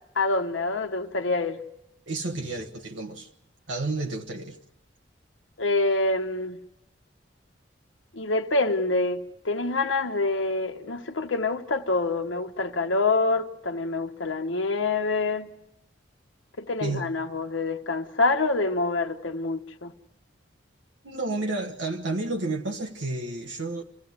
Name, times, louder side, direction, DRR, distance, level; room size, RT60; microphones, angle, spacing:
voice 1, 0.1-1.6 5.6-6.6 8.1-15.5 16.6-19.9, left 3 dB, 80° left, 1.2 m, -26 dB
voice 2, 2.1-3.3 3.7-4.6 16.8-17.1 21.0-23.8, right 2 dB, 75° right, 1.3 m, -31 dB
27.0 x 16.0 x 9.6 m
head